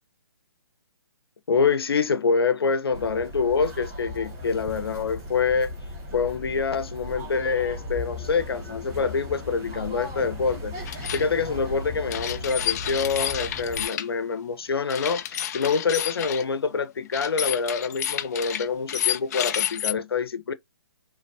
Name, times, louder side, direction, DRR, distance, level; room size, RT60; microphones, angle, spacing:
voice 1, 1.5-5.7 6.1-20.5, left 5 dB, 75° left, 1.0 m, -26 dB
sound 1, 2.9-13.8, left 1 dB, 25° right, 2.1 m, -37 dB
sound 2, 10.9-11.2 12.1-14.1 14.9-16.4 17.1-19.9, left 11 dB, 45° left, 0.6 m, -29 dB
5.0 x 3.8 x 2.7 m
hypercardioid pair, 145°, 13 cm